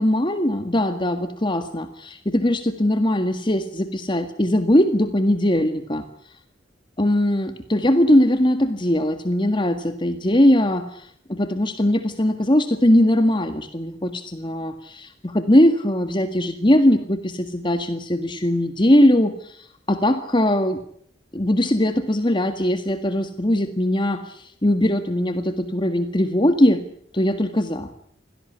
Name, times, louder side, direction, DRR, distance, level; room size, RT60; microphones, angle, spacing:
voice 1, 0.0-6.0 7.0-20.8 21.3-26.8 27.1-27.9, left 1 dB, 25° left, 8 dB, 1.8 m, -20 dB
26.5 x 17.5 x 10.0 m, 0.64 s
head